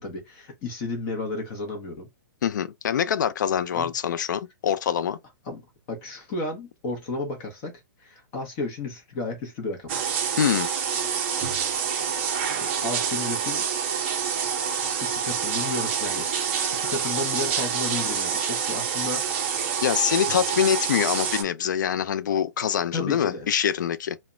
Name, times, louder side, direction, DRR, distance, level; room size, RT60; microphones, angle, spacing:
voice 1, 0.0-2.1 3.7-3.9 5.4-5.6 5.9-7.7 8.0-9.9 12.6-13.6 15.0-16.5 16.7-19.6 22.9-23.5, left 3 dB, 25° left, 0.6 m, -33 dB
voice 2, 2.4-5.2 10.3-10.7 19.8-24.2, left 9 dB, 75° left, 0.4 m, -24 dB
sound 1, 9.9-21.4, right 7 dB, 40° right, 0.6 m, -27 dB
2.1 x 2.1 x 3.6 m
hypercardioid pair, 165°, 10 cm